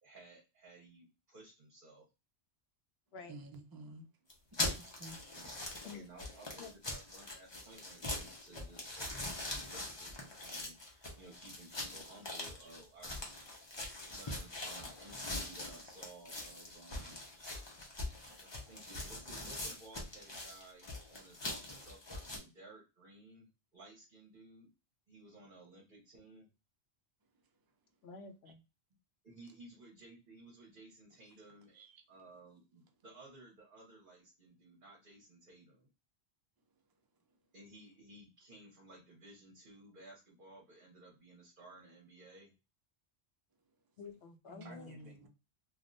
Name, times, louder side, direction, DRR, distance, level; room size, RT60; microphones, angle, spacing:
voice 1, 0.0-2.1 5.3-5.5 5.9-10.1 10.4-13.3 14.1-17.2 17.4-17.6 18.4-24.7 25.1-26.5 29.2-35.9 37.5-42.5 44.6-45.3, right 2 dB, 55° right, 1.0 m, -57 dB
voice 2, 3.3-4.0 4.6-5.2 31.8-32.0 44.5-45.3, right 1 dB, 35° right, 0.3 m, -50 dB
sound 1, 4.3-22.4, left 1 dB, 30° left, 0.7 m, -42 dB
voice 3, 28.0-28.6 44.0-44.9, left 5 dB, 75° left, 0.8 m, -49 dB
3.3 x 2.4 x 2.5 m
omnidirectional pair, 1.1 m